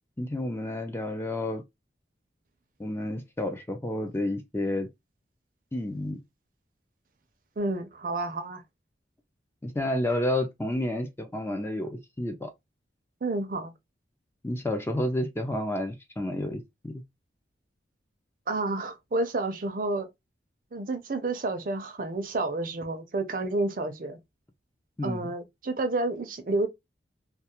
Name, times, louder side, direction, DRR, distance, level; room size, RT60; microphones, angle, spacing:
voice 1, 0.2-1.6 2.8-4.9 5.7-6.2 9.6-12.5 14.4-17.0 25.0-25.3, left 1 dB, 15° left, 0.3 m, -30 dB
voice 2, 7.6-8.6 13.2-13.7 18.5-20.1 20.7-24.2 25.0-26.7, right 2 dB, 45° right, 0.5 m, -30 dB
2.3 x 2.3 x 2.8 m
head